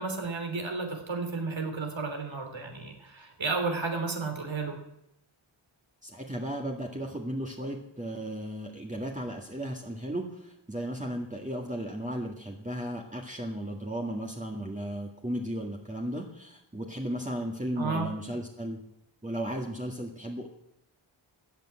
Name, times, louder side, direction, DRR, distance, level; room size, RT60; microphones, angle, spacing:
voice 1, 0.0-4.8 17.8-18.1, right 4 dB, 70° right, 4 dB, 3.4 m, -32 dB
voice 2, 6.0-18.8 19.2-20.5, right 1 dB, 15° right, -1 dB, 1.9 m, -35 dB
13.5 x 9.1 x 8.9 m, 0.80 s
wide cardioid pair, 75°, 47 cm